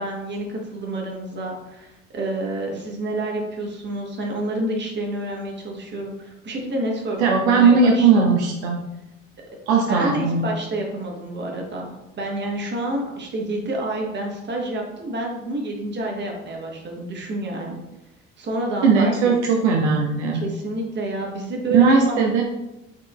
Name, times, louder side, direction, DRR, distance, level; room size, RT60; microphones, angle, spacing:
voice 1, 0.0-8.2 9.9-17.7 18.4-19.1 19.5-19.6 20.3-22.2, right 1 dB, 30° right, 0 dB, 1.0 m, -29 dB
voice 2, 7.2-8.8 9.7-10.4 18.8-20.4 21.7-22.4, right 5 dB, 65° right, 1 dB, 0.6 m, -18 dB
4.5 x 3.7 x 2.2 m, 0.95 s
figure-of-eight pair, 55°, 38 cm